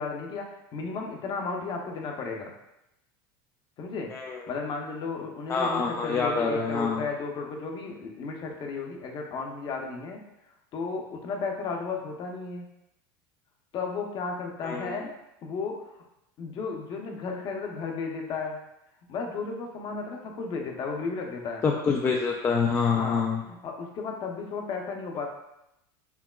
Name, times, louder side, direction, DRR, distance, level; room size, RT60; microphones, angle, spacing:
voice 1, 0.0-2.5 3.8-4.1 4.5-10.2 10.7-12.7 13.7-15.1 15.4-15.8 16.4-18.6 19.1-21.6 22.9-25.3, left 4 dB, 45° left, 2 dB, 0.7 m, -34 dB
voice 2, 4.1-4.4 5.5-7.0 14.6-15.1 21.6-23.4, left 5 dB, 25° left, 0 dB, 0.3 m, -26 dB
4.6 x 2.9 x 2.3 m, 0.85 s
supercardioid pair, 115°, 11 cm